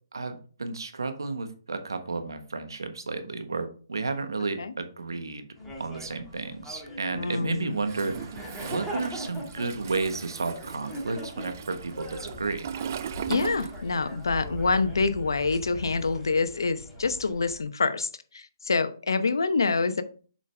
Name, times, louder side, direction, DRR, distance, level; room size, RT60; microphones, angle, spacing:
voice 1, 0.1-5.5 5.8-12.7, right 3 dB, 90° right, 8 dB, 1.2 m, -32 dB
sound 1, 5.6-17.6, equal, ahead, 1.8 m, -41 dB
voice 2, 7.1-7.7 13.3-20.0, left 4 dB, 80° left, 11 dB, 0.9 m, -26 dB
Toilet flush, 7.8-14.3 14.5-16.1, right 8 dB, 45° right, 0.4 m, -38 dB
7.3 x 5.2 x 3.4 m, 0.40 s
hypercardioid pair, 150°, 2 cm